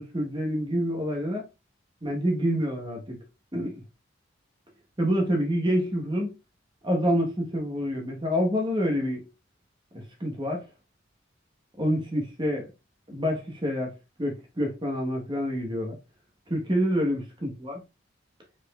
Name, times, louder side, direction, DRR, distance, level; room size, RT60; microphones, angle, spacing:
voice 1, 0.0-1.5 2.0-3.2 3.5-3.8 5.0-6.3 6.8-9.3 9.9-10.6 11.8-12.7 13.1-13.9 14.2-16.0 16.5-17.8, equal, 25° right, 1.2 m, -27 dB
5.0 x 4.4 x 2.4 m
head